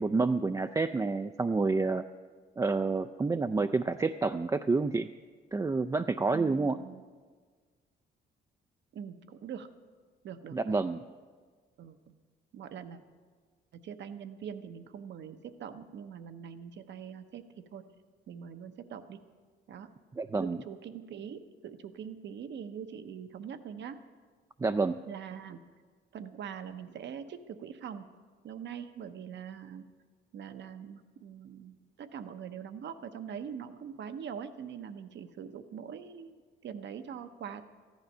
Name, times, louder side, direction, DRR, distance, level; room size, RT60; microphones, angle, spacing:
voice 1, 0.0-2.1 2.6-5.1 5.5-6.8 10.5-11.0 20.2-20.6 24.6-25.0, right 3 dB, 15° right, 7 dB, 0.4 m, -28 dB
voice 2, 6.3-7.0 8.9-9.7 10.2-10.8 11.8-12.0 12.5-13.0 13.7-17.9 18.3-19.2 19.7-19.9 20.3-24.0 25.1-25.6 26.1-28.1 28.4-29.9 30.3-36.4 36.6-37.6, right 8 dB, 65° right, 10 dB, 0.9 m, -43 dB
14.0 x 10.5 x 5.5 m, 1.5 s
cardioid pair, 90°, 20 cm